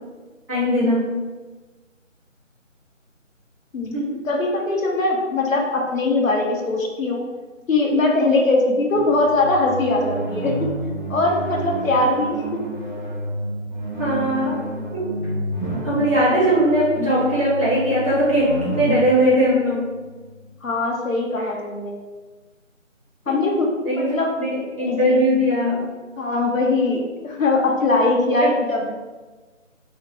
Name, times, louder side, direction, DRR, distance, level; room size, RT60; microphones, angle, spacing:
voice 1, 0.5-1.1 3.9-4.1 14.0-14.6 14.9-15.1 15.8-19.9 23.2-23.3 23.8-25.8 28.4-28.5, equal, 20° right, -13 dB, 0.9 m, -20 dB
voice 2, 4.2-7.2 7.7-10.5 11.1-12.4 20.6-22.0 23.3-23.7 24.0-24.3 24.9-25.2 26.2-28.9, left 2 dB, 90° left, 0 dB, 0.8 m, -21 dB
sound 1, 8.9-20.6, right 1 dB, 40° left, 0.4 m, -30 dB
2.8 x 2.4 x 3.0 m, 1.3 s
figure-of-eight pair, 165°, 39 cm